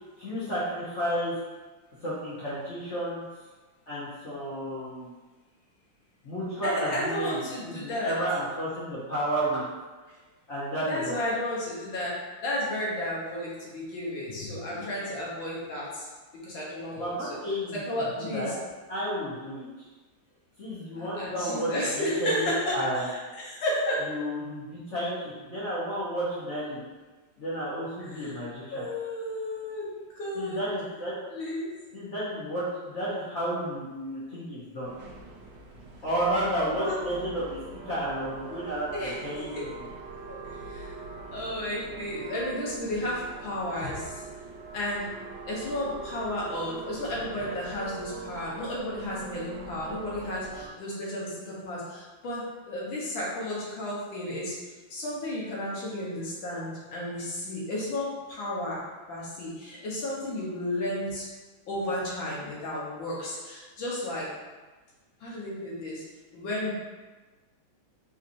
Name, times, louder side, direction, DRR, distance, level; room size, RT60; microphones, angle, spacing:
voice 1, 0.2-1.3 2.0-3.2 3.9-5.1 6.2-9.6 10.5-11.2 17.0-17.8 18.2-18.5 18.9-19.9 20.6-21.7 21.9-23.0 24.1-26.8 27.4-28.8 30.3-31.1 31.9-34.9 36.0-39.5, right 1 dB, 55° left, -10 dB, 0.8 m, -32 dB
voice 2, 6.6-8.2 10.9-12.2 12.4-16.1 16.3-17.4 17.7-18.5 21.0-23.1 23.4-24.0 28.0-28.4 28.7-29.9 30.2-30.6 31.3-31.7 36.4-36.5 36.8-36.9 38.9-39.2 39.5-39.7 40.3-40.4 40.7-40.9 41.3-44.1 44.7-45.1 45.5-54.6 54.9-58.8 59.1-61.3 61.7-64.3 65.2-66.0 66.3-66.7, left 1 dB, 70° left, -5 dB, 1.6 m, -33 dB
sound 1, 34.8-50.7, right 4 dB, 85° right, 1.5 m, -42 dB
4.1 x 2.8 x 2.5 m, 1.3 s
omnidirectional pair, 2.3 m